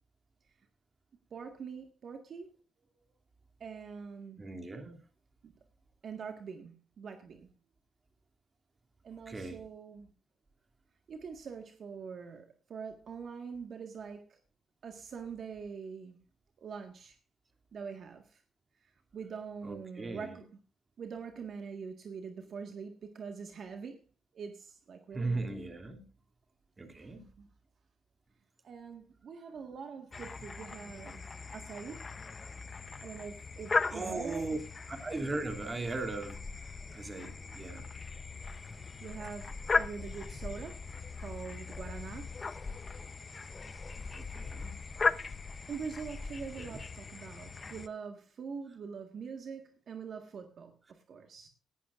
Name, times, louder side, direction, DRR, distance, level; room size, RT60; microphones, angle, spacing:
voice 1, 1.3-2.5 3.6-4.5 5.4-5.5 6.0-7.5 9.0-10.1 11.1-14.4 14.8-16.2 16.6-17.2 17.7-18.4 18.8-20.5 21.0-24.0 24.3-25.6 27.4-27.5 28.6-32.1 33.0-34.5 38.7-40.8 41.2-42.3 45.7-51.5, right 6 dB, 55° right, 1.7 m, -44 dB
voice 2, 4.4-5.0 9.3-9.6 19.6-20.4 25.1-26.0 26.8-27.3 33.9-34.6 34.9-37.9 44.1-44.8 46.5-46.8, right 3 dB, 25° right, 2.7 m, -38 dB
sound 1, 30.1-47.9, left 4 dB, 30° left, 0.8 m, -38 dB
17.5 x 12.0 x 2.5 m
cardioid pair, 90°, 0 cm